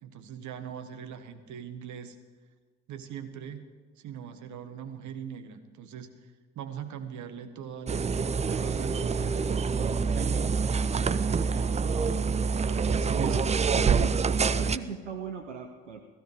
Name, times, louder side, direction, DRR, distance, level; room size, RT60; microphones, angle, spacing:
voice 1, 0.0-2.2 2.9-3.6 4.0-6.1 6.5-10.6 10.9-12.3 12.6-13.5, right 8 dB, 55° right, 8 dB, 1.4 m, -41 dB
sound 1, 7.9-14.8, right 5 dB, 20° right, 0.5 m, -26 dB
voice 2, 13.2-14.2 14.5-16.0, right 5 dB, 90° right, 5 dB, 0.7 m, -38 dB
15.5 x 15.5 x 5.0 m, 1.4 s
figure-of-eight pair, 45°, 35 cm